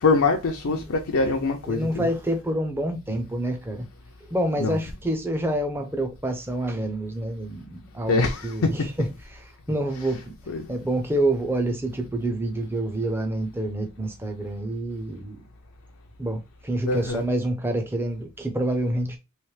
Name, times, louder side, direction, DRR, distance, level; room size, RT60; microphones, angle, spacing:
voice 1, 0.0-2.1 4.6-4.8 8.1-8.9 10.5-10.7 16.9-17.2, left 3 dB, 65° left, 0.5 m, -23 dB
voice 2, 1.7-3.9 4.2-9.1 9.3-10.2 10.7-15.5 16.2-19.2, right 1 dB, 10° right, 0.6 m, -27 dB
3.2 x 3.1 x 3.1 m
head